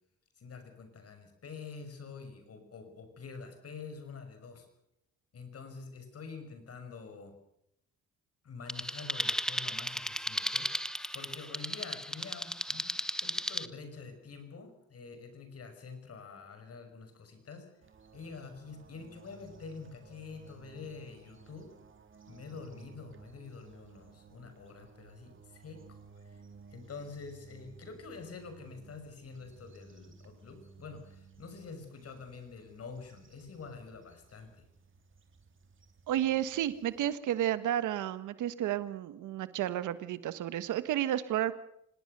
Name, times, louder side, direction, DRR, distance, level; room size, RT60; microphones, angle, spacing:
voice 1, 0.4-4.7 5.3-7.4 8.4-17.7 18.1-21.7 22.3-26.4 26.7-34.7, left 4 dB, 50° left, 8 dB, 6.4 m, -47 dB
sound 1, 8.7-13.7, equal, ahead, 1.1 m, -35 dB
sound 2, 17.8-37.1, right 5 dB, 40° right, 3.6 m, -57 dB
voice 2, 36.1-41.5, right 12 dB, 80° right, 13 dB, 1.5 m, -32 dB
25.5 x 18.5 x 6.8 m, 0.75 s
cardioid pair, 90°, 30 cm